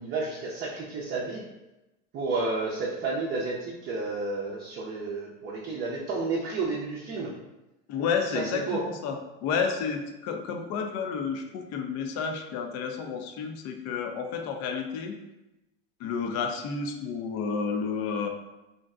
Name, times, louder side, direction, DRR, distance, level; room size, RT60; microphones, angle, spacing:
voice 1, 0.0-1.4 2.1-7.3 8.3-8.8, right 3 dB, 30° right, -5 dB, 0.5 m, -31 dB
voice 2, 7.9-15.2 16.0-18.3, left 6 dB, 45° left, 4 dB, 0.5 m, -31 dB
2.5 x 2.1 x 3.6 m, 0.98 s
supercardioid pair, 110°, 35 cm